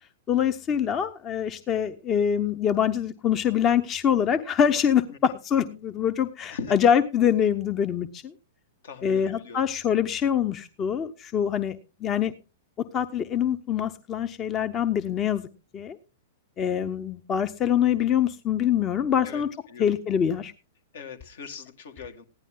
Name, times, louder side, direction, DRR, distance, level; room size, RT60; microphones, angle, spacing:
voice 1, 0.3-8.3 9.0-12.3 12.9-15.5 15.7-16.0 16.6-19.5 19.8-20.5, left 8 dB, 30° left, 10 dB, 0.8 m, -24 dB
voice 2, 8.8-9.6 19.2-20.0 20.9-22.2, left 5 dB, 70° left, 6 dB, 2.0 m, -40 dB
15.5 x 10.5 x 3.8 m, 0.32 s
hypercardioid pair, 105°, 0 cm